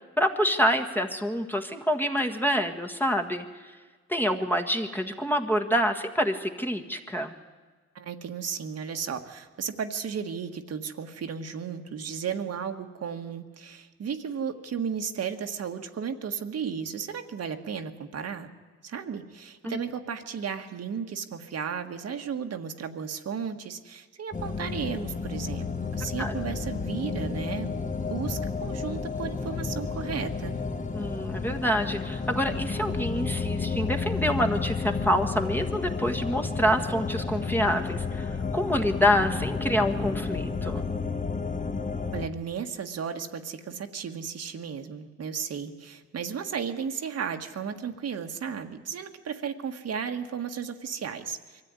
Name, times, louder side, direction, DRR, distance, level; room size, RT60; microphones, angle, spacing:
voice 1, 0.2-3.4 4.1-7.3 19.6-19.8 26.2-26.3 30.9-40.8, equal, 5° left, 4 dB, 1.6 m, -27 dB
voice 2, 7.9-18.5 18.8-25.7 25.9-27.7 28.1-30.5 42.1-51.6, right 7 dB, 55° right, 5 dB, 1.6 m, -34 dB
sound 1, 24.3-42.3, left 4 dB, 25° left, 1.2 m, -31 dB
22.5 x 14.0 x 9.7 m, 1.4 s
cardioid pair, 90°, 30 cm